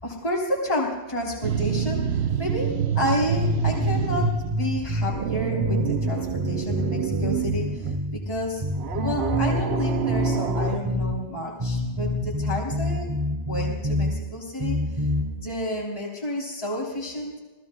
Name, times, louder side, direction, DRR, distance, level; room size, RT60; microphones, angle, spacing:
voice 1, 0.0-13.1 13.5-14.8 15.4-17.3, left 1 dB, 35° left, -4 dB, 3.6 m, -30 dB
sound 1, 1.4-4.6 4.9-8.0 8.8-10.8, right 9 dB, 75° right, 0.9 m, -27 dB
sound 2, 3.3-5.2 5.6-8.2 8.6-11.2 11.6-14.2 14.6-15.3, left 1 dB, 30° right, 4.8 m, -27 dB
27.5 x 19.0 x 2.2 m, 1.2 s
omnidirectional pair, 1.1 m